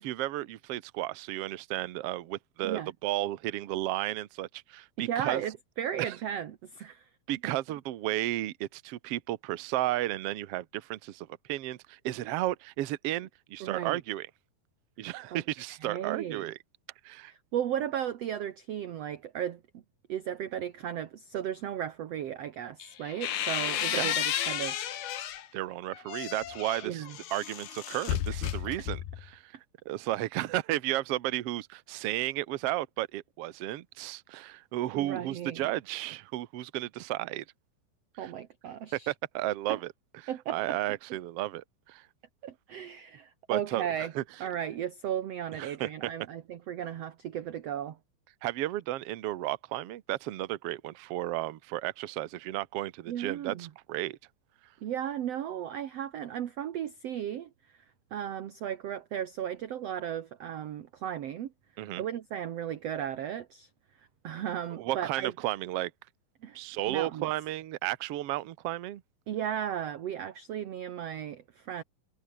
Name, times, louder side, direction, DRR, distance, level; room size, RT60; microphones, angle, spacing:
voice 1, 0.0-5.4 6.0-6.1 7.3-14.3 15.0-16.6 17.0-17.3 23.9-24.1 25.5-27.0 27.3-29.5 29.8-37.4 38.2-38.3 38.9-39.8 40.5-42.0 43.5-44.2 45.6-46.1 48.4-54.2 61.8-62.0 64.7-65.9 66.5-69.0, right 15 dB, 75° right, 1.3 m, -33 dB
voice 2, 5.0-7.1 13.6-14.0 15.3-15.4 15.8-16.5 17.3-19.8 20.1-24.9 26.8-27.2 34.9-35.7 38.2-39.1 39.7-39.8 40.3-40.8 42.4-44.1 44.4-48.0 53.1-53.7 54.8-57.5 58.1-61.5 62.0-63.7 64.2-65.3 66.4-66.6 66.9-67.3 69.3-71.8, right 10 dB, 60° right, 1.8 m, -35 dB
sound 1, 22.8-25.5 25.9-29.3, left 11 dB, 90° left, 3.9 m, -33 dB
omnidirectional pair, 4.3 m